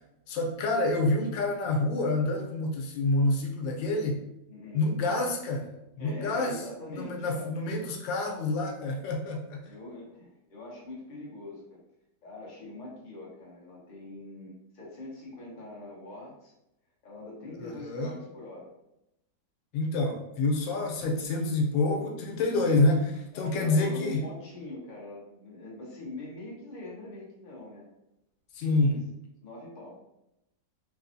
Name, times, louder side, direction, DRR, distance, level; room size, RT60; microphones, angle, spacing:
voice 1, 0.3-4.2 4.7-5.7 6.0-6.6 6.9-9.7 17.6-18.1 19.7-24.3 28.5-29.0, left 2 dB, 90° left, 1 dB, 1.4 m, -27 dB
voice 2, 4.5-4.9 6.0-7.6 9.6-11.8 12.2-16.5 17.0-18.7 21.9-22.6 23.3-27.9 28.7-29.0 29.4-30.0, left 2 dB, 35° left, -5 dB, 0.8 m, -43 dB
3.5 x 3.0 x 2.6 m, 0.86 s
omnidirectional pair, 1.9 m